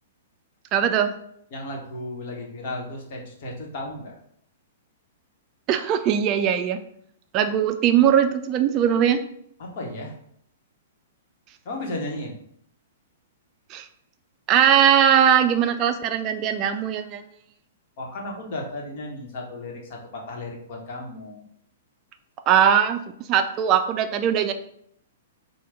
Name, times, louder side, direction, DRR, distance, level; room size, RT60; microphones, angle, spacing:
voice 1, 0.7-1.1 5.7-6.8 7.3-9.2 13.7-13.9 14.5-17.2 22.5-23.0 23.3-24.5, right 9 dB, 35° right, 8 dB, 0.3 m, -20 dB
voice 2, 1.5-4.1 9.6-10.2 11.6-12.4 18.0-21.5, left 1 dB, 55° left, 0 dB, 1.1 m, -34 dB
4.8 x 2.2 x 3.4 m, 0.70 s
hypercardioid pair, 115°, 0 cm